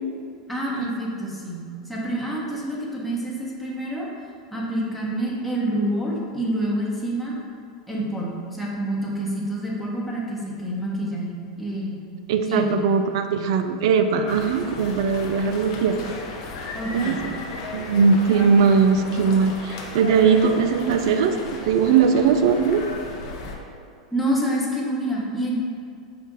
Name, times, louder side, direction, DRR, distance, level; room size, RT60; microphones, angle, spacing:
voice 1, 0.5-4.1 4.5-7.4 7.9-12.0 12.5-12.6 16.7-17.2 24.1-25.5, right 1 dB, ahead, -6 dB, 1.0 m, -27 dB
voice 2, 12.3-16.1 16.9-17.3 17.7-21.4 21.7-22.8, right 5 dB, 65° right, 7 dB, 0.3 m, -20 dB
sound 1, 14.3-23.6, left 3 dB, 60° left, 0.6 m, -35 dB
5.2 x 2.4 x 3.9 m, 2.4 s
hypercardioid pair, 95°, 3 cm